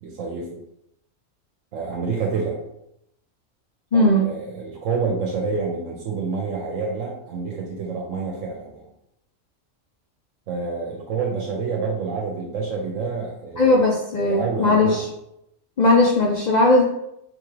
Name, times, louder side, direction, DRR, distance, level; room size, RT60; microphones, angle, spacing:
voice 1, 0.0-0.6 1.7-2.6 3.9-8.8 10.5-13.9 14.2-15.1, right 4 dB, 80° right, -1 dB, 1.0 m, -28 dB
voice 2, 3.9-4.3 13.6-14.9 15.8-16.8, left 2 dB, 65° left, -1 dB, 0.4 m, -17 dB
3.5 x 3.5 x 3.2 m, 0.79 s
omnidirectional pair, 1.3 m